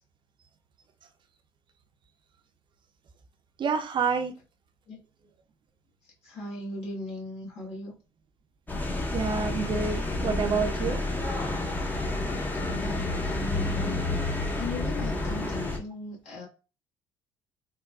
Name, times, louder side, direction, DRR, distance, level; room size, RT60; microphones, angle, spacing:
voice 1, 3.6-4.3 9.1-11.0, right 5 dB, 45° right, 0.6 m, -28 dB
voice 2, 6.2-7.9 12.7-14.0 14.5-16.5, left 2 dB, 60° left, 1.3 m, -38 dB
sound 1, 8.7-15.8, left 2 dB, 15° left, 0.6 m, -29 dB
3.6 x 2.2 x 2.2 m
hypercardioid pair, 60°, 12 cm